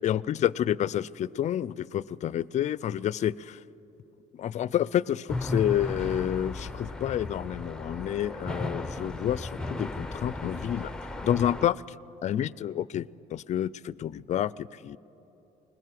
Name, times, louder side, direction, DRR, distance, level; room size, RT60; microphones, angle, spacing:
voice 1, 0.0-3.6 4.3-10.9 11.2-11.8 12.2-15.0, left 11 dB, 45° left, 21 dB, 0.4 m, -29 dB
sound 1, 5.3-11.7, left 2 dB, 5° left, 0.6 m, -35 dB
20.5 x 20.5 x 7.5 m, 3.0 s
cardioid pair, 110°, 17 cm